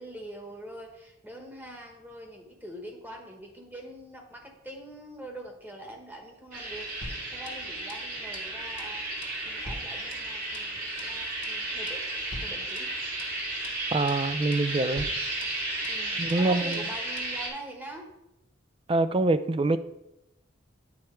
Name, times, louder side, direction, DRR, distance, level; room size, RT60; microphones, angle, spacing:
voice 1, 0.0-9.0 9.4-12.0 12.4-12.9 15.9-18.1, right 1 dB, 10° right, 2 dB, 1.3 m, -44 dB
sound 1, 6.5-17.5, right 2 dB, 45° right, 2.2 m, -33 dB
sound 2, 7.0-8.1 8.3-8.5 8.8-9.0 9.2-10.7 11.0-11.2 11.4-11.6 11.9-12.1 12.3-13.4 13.6-13.8 14.1-14.3 14.5-14.7 15.0-16.0 16.3-16.5 16.7-16.9 17.2-17.4, left 1 dB, 65° left, 1.1 m, -45 dB
voice 2, 13.9-15.1 16.2-16.8 18.9-19.8, right 2 dB, 25° right, 13 dB, 0.4 m, -25 dB
9.7 x 4.3 x 4.5 m, 0.88 s
head